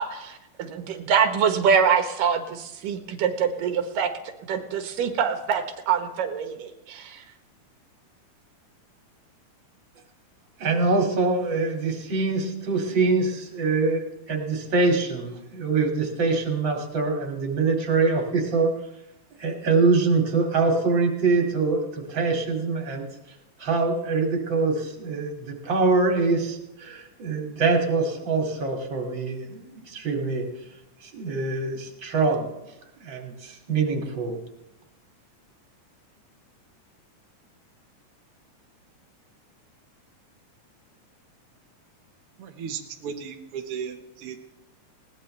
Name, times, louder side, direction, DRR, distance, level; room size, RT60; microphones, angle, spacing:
voice 1, 0.0-7.2, right 7 dB, 85° right, 6 dB, 3.0 m, -25 dB
voice 2, 10.6-18.7 19.4-23.1 23.6-30.5 31.0-32.4 33.0-34.4, right 3 dB, 35° right, 2 dB, 3.0 m, -24 dB
voice 3, 42.4-44.4, right 7 dB, 60° right, 3 dB, 1.7 m, -35 dB
20.5 x 18.0 x 3.3 m, 0.91 s
omnidirectional pair, 3.7 m